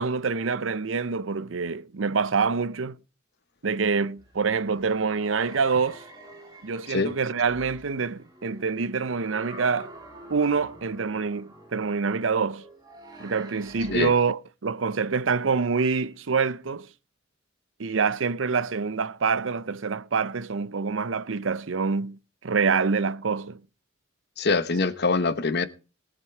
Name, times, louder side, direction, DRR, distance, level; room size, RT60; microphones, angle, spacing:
voice 1, 0.0-3.0 3.6-6.0 6.6-9.9 10.3-12.6 13.2-16.9 17.8-23.6, right 5 dB, 90° right, 0.7 m, -26 dB
sound 1, 4.2-14.2, right 1 dB, 20° right, 3.3 m, -47 dB
voice 2, 24.4-25.7, left 4 dB, 60° left, 1.0 m, -24 dB
19.5 x 7.5 x 4.5 m
head